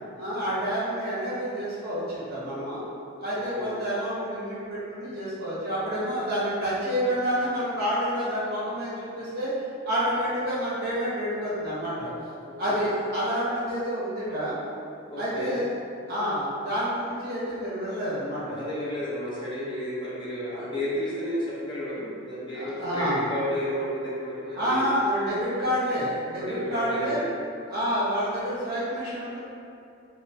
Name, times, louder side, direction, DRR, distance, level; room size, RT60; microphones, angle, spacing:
voice 1, 0.2-2.8 3.2-9.5 9.8-12.1 12.6-14.6 15.2-15.7 16.1-18.6 20.5-20.7 22.5-23.2 24.5-27.2 27.7-29.4, equal, 50° right, -9 dB, 0.8 m, -28 dB
voice 2, 12.4-12.9 15.1-15.6 18.6-24.9 26.4-27.3, equal, 25° left, -8 dB, 0.5 m, -32 dB
3.0 x 2.0 x 2.6 m, 2.5 s
head